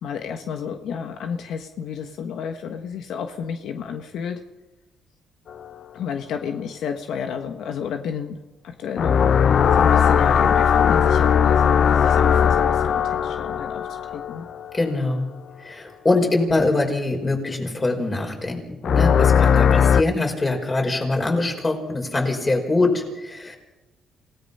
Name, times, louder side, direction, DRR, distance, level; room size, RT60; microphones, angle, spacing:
voice 1, 0.0-4.4 5.9-8.4 8.6-14.4, left 7 dB, 75° left, 6 dB, 1.4 m, -31 dB
sound 1, 9.0-14.8 18.8-20.0, left 7 dB, 55° left, 0.7 m, -18 dB
voice 2, 14.7-15.3 15.6-23.6, left 2 dB, 25° left, 3 dB, 5.6 m, -23 dB
27.5 x 17.5 x 5.6 m, 1.1 s
cardioid pair, 90°, 0 cm